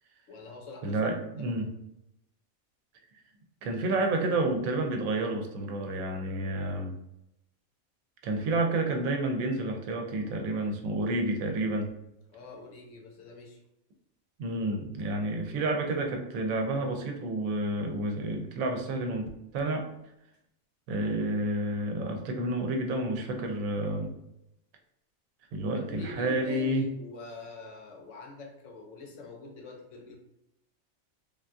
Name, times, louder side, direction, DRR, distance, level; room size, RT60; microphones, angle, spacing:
voice 1, 0.3-1.0 1.4-1.7 12.3-13.6 25.7-30.2, left 3 dB, 70° left, 2 dB, 0.9 m, -45 dB
voice 2, 0.8-1.7 3.6-6.9 8.2-11.9 14.4-19.9 20.9-24.1 25.5-26.9, right 2 dB, 90° right, 4 dB, 1.0 m, -30 dB
3.4 x 2.3 x 2.5 m, 0.82 s
omnidirectional pair, 1.4 m